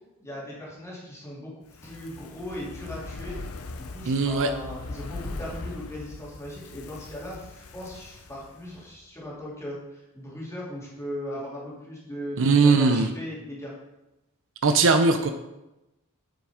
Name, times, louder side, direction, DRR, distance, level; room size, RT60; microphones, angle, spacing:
voice 1, 0.2-3.4 3.7-13.8, equal, 15° left, -6 dB, 2.8 m, -38 dB
Fire, 1.6-9.0 9.3-9.4, left 2 dB, 70° left, 0.7 m, -40 dB
voice 2, 4.1-4.5 12.4-13.1 14.6-15.3, right 4 dB, 60° right, 8 dB, 0.6 m, -20 dB
7.8 x 6.0 x 4.9 m, 0.95 s
head